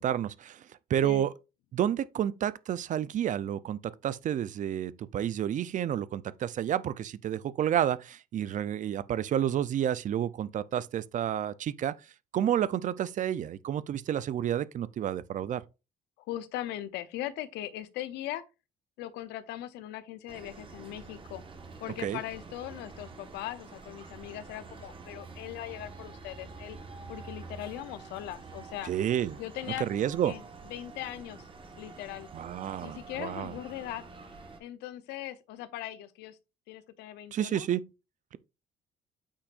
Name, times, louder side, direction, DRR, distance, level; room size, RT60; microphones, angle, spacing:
voice 1, 0.0-1.3 1.7-12.0 12.3-15.6 22.0-22.2 28.9-29.4 29.8-30.3 32.3-33.6 37.3-37.9, right 10 dB, 50° right, 0.6 m, -30 dB
voice 2, 16.2-18.4 19.0-21.4 21.8-26.8 27.1-28.9 29.4-29.9 30.3-30.4 30.7-31.5 31.8-32.3 32.8-34.0 34.6-36.4 36.7-37.7, left 13 dB, 85° left, 0.8 m, -39 dB
sound 1, 20.3-34.6, right 4 dB, 30° right, 1.5 m, -47 dB
8.3 x 6.1 x 2.5 m
cardioid pair, 110°, 17 cm